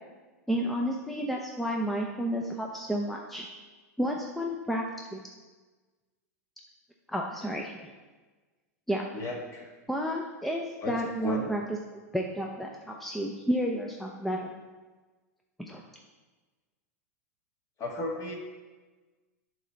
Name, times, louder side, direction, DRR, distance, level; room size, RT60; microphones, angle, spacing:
voice 1, 0.5-3.5 4.0-4.8 5.1-5.3 7.1-7.7 8.9-9.0 9.9-11.6 12.1-14.5 15.6-15.8, equal, ahead, 0 dB, 0.5 m, -31 dB
voice 2, 9.1-9.7 10.8-11.5 17.8-18.4, left 2 dB, 35° left, 0 dB, 1.5 m, -35 dB
7.6 x 3.2 x 5.6 m, 1.3 s
hypercardioid pair, 105°, 9 cm